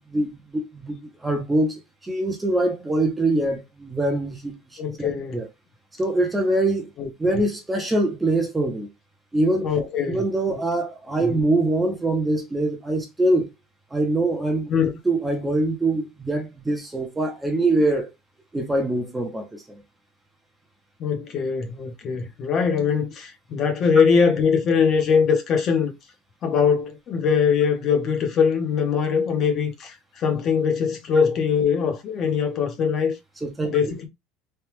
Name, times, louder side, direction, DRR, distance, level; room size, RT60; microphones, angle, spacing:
voice 1, 0.0-1.7 2.0-4.5 5.0-5.1 5.3-5.5 6.0-6.9 7.2-8.9 9.3-13.5 13.9-14.7 15.0-18.1 18.5-19.8 33.4-33.7, right 2 dB, 10° right, 0.7 m, -23 dB
voice 2, 4.8-5.4 7.0-7.1 9.6-10.2 14.7-14.9 21.0-25.9 26.4-33.1 33.7-34.1, left 6 dB, 35° left, 0.8 m, -22 dB
3.3 x 2.3 x 2.9 m
cardioid pair, 155°, 0 cm